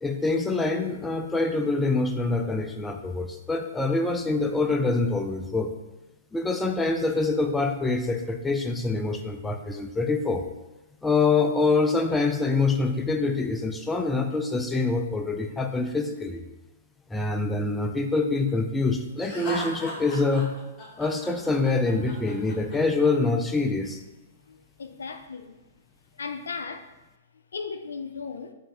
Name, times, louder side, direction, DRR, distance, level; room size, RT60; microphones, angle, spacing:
voice 1, 0.0-5.7 6.3-10.5 11.0-16.4 17.1-20.5 21.0-24.0, left 3 dB, 10° left, 5 dB, 0.3 m, -25 dB
Laughter, 19.2-23.1, left 1 dB, 25° left, 1.2 m, -37 dB
voice 2, 24.5-25.6 26.1-26.9 27.5-28.5, left 5 dB, 80° left, 7 dB, 0.4 m, -36 dB
4.6 x 2.6 x 3.3 m, 1.0 s
hypercardioid pair, 125°, 0 cm